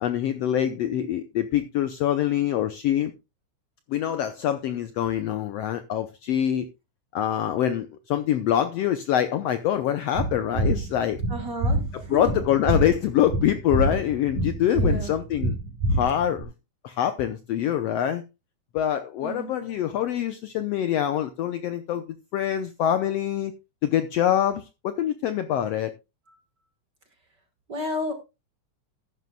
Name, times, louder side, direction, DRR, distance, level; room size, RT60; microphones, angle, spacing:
voice 1, 0.0-3.1 3.9-6.6 7.1-11.2 12.1-15.5 15.9-16.5 16.8-18.2 18.7-22.0 22.3-23.5 23.8-25.9, left 10 dB, 75° left, 1.5 m, -25 dB
sound 1, 10.1-16.4, right 1 dB, 70° right, 5.2 m, -26 dB
voice 2, 11.3-12.3 14.7-15.1 19.2-19.6 26.3-26.4 27.7-28.1, equal, 45° right, 1.7 m, -32 dB
13.5 x 11.0 x 2.3 m
omnidirectional pair, 3.6 m